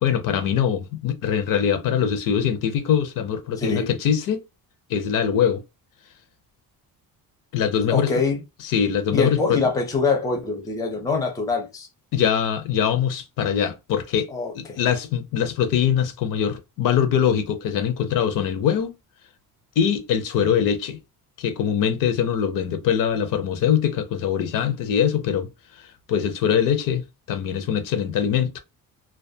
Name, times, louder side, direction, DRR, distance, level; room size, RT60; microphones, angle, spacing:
voice 1, 0.0-4.4 4.9-5.6 7.5-8.1 8.6-9.6 12.1-14.3 14.6-18.9 19.8-21.0 21.4-25.5 25.7-27.0 27.3-28.6, left 8 dB, 65° left, 0.5 m, -22 dB
voice 2, 3.6-3.9 7.9-8.4 9.1-11.9 14.3-14.8, left 4 dB, 10° left, 0.4 m, -24 dB
2.3 x 2.1 x 2.6 m
cardioid pair, 155°, 36 cm